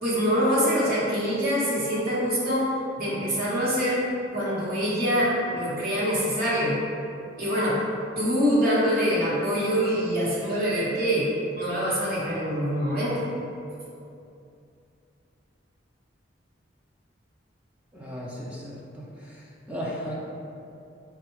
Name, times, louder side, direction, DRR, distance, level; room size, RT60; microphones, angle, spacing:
voice 1, 0.0-2.7 3.0-4.0 4.3-6.7 7.4-7.8 8.2-11.2 11.5-13.2, equal, 55° right, -8 dB, 1.0 m, -24 dB
voice 2, 17.9-20.1, equal, 5° right, -6 dB, 0.4 m, -36 dB
4.2 x 2.2 x 4.6 m, 2.6 s
head